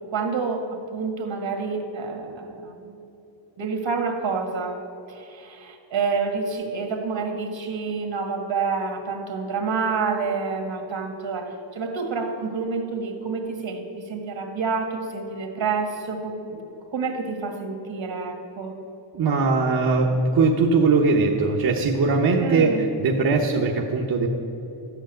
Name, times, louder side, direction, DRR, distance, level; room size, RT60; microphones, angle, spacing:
voice 1, 0.1-3.0 3.6-4.8 5.1-16.6 16.9-18.7 22.4-22.9, right 4 dB, 70° right, 4 dB, 1.9 m, -28 dB
voice 2, 19.1-24.3, right 4 dB, 50° right, -1 dB, 1.0 m, -20 dB
12.5 x 8.1 x 9.0 m, 2.9 s
wide cardioid pair, 175°, 48 cm